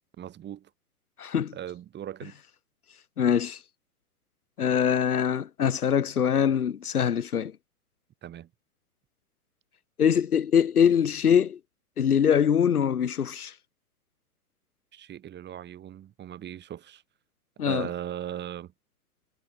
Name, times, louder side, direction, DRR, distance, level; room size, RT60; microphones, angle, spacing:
voice 1, 0.2-0.7 1.5-2.3 8.2-8.5 14.9-17.0 17.7-18.7, right 11 dB, 25° right, 3.9 m, -38 dB
voice 2, 1.2-1.6 3.2-3.6 4.6-7.5 10.0-11.6 12.0-13.5 17.6-17.9, left 8 dB, 85° left, 1.9 m, -23 dB
hypercardioid pair, 120°, 44 cm